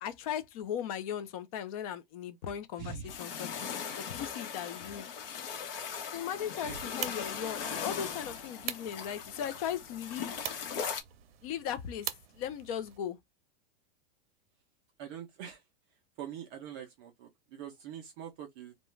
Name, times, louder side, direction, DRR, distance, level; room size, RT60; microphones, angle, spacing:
voice 1, 0.0-3.5 4.0-5.1 6.1-10.4 11.4-13.2, left 9 dB, 40° left, 0.4 m, -38 dB
voice 2, 2.8-3.2 6.6-6.8 15.0-15.6 16.2-18.7, right 8 dB, 25° right, 0.4 m, -44 dB
sound 1, 3.1-11.0, left 7 dB, 70° left, 0.8 m, -39 dB
sound 2, 6.6-13.0, right 11 dB, 80° right, 0.6 m, -44 dB
2.3 x 2.2 x 3.0 m
supercardioid pair, 165°, 30 cm